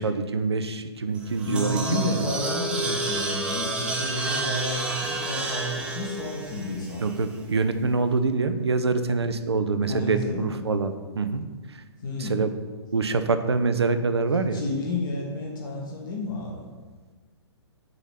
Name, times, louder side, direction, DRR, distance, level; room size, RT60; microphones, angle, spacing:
voice 1, 0.0-2.3 7.0-11.4 11.7-11.8 12.2-12.5 12.9-14.6, right 4 dB, 70° right, 9 dB, 0.6 m, -25 dB
sound 1, 1.2-7.4, right 2 dB, 5° right, 0.7 m, -30 dB
voice 2, 1.4-7.1 9.9-10.6 12.0-12.4 14.5-16.7, left 2 dB, 45° left, -1 dB, 1.1 m, -31 dB
7.7 x 3.0 x 5.7 m, 1.4 s
figure-of-eight pair, 120°, 14 cm